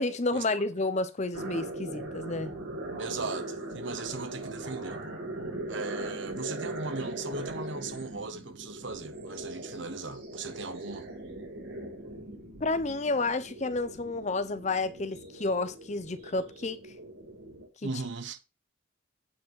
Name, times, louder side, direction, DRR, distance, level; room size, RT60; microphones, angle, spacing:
voice 1, 0.0-2.5 12.6-16.8 17.8-17.9, left 3 dB, 35° left, 0.7 m, -30 dB
sound 1, 1.3-17.7, right 1 dB, 80° right, 4.7 m, -40 dB
voice 2, 3.0-5.0 5.7-11.1 17.8-18.4, right 4 dB, 65° right, 1.0 m, -38 dB
8.8 x 5.0 x 5.3 m
head